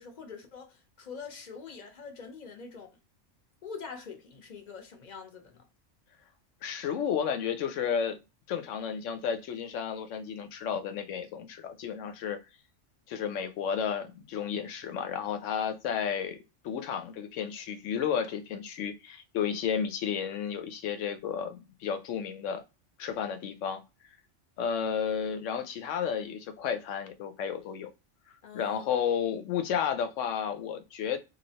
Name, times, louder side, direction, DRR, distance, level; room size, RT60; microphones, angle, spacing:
voice 1, 0.0-2.9 3.6-5.6 28.4-28.9, left 5 dB, 45° left, 0.7 m, -44 dB
voice 2, 6.6-8.2 8.5-12.4 13.1-16.4 16.6-22.6 23.0-23.8 24.6-27.9 28.5-31.2, left 7 dB, 85° left, 1.0 m, -32 dB
3.1 x 2.7 x 2.7 m
omnidirectional pair, 1.3 m